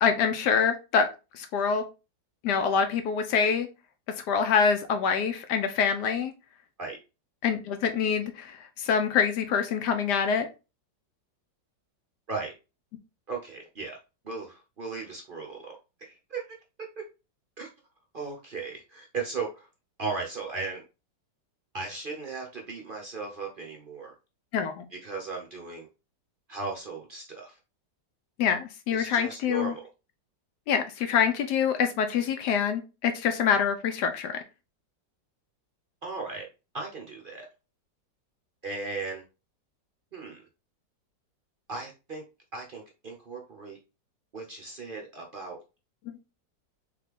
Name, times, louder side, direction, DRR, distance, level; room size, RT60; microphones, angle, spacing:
voice 1, 0.0-1.1 1.4-1.8 2.4-3.7 4.3-6.3 7.4-10.5 24.5-24.8 28.4-29.7 30.7-34.4, left 6 dB, 75° left, 7 dB, 1.1 m, -25 dB
voice 2, 13.3-14.0 14.2-16.4 16.8-17.0 17.6-17.7 18.1-19.7 20.0-20.8 21.7-24.1 24.9-25.9 26.5-27.6 28.9-29.9 36.0-36.5 36.7-37.5 38.6-39.2 40.1-40.4 41.7-42.2 42.5-43.8 44.3-45.6, right 4 dB, 55° right, 0 dB, 0.6 m, -37 dB
3.6 x 3.3 x 3.5 m, 0.29 s
omnidirectional pair, 2.0 m